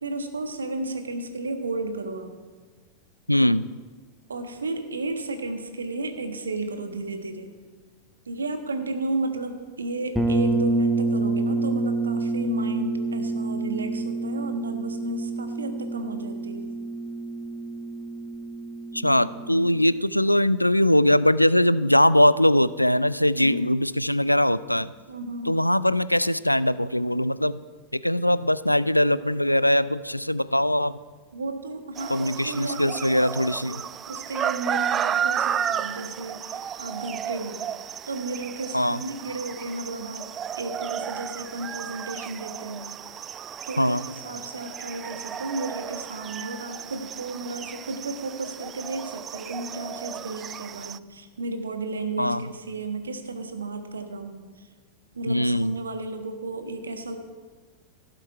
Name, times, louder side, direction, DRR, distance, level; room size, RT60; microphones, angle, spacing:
voice 1, 0.0-2.3 4.3-7.5 8.2-16.7 23.3-23.7 25.1-25.6 31.3-33.3 33.6-33.8 34.1-37.6 38.1-40.3 40.6-42.9 43.7-54.7 55.1-57.2, right 2 dB, 75° right, 7 dB, 1.3 m, -33 dB
voice 2, 3.3-3.7 18.9-24.9 25.5-27.6 28.0-30.9 32.1-33.8 38.7-39.0 43.8-44.0 52.2-52.4 55.3-55.7, left 1 dB, 90° left, 17 dB, 0.3 m, -21 dB
sound 1, 10.1-19.8, right 3 dB, ahead, 1.2 m, -28 dB
sound 2, 32.0-51.0, right 9 dB, 25° right, 0.3 m, -33 dB
16.5 x 7.8 x 4.6 m, 1.4 s
figure-of-eight pair, 90°, 0 cm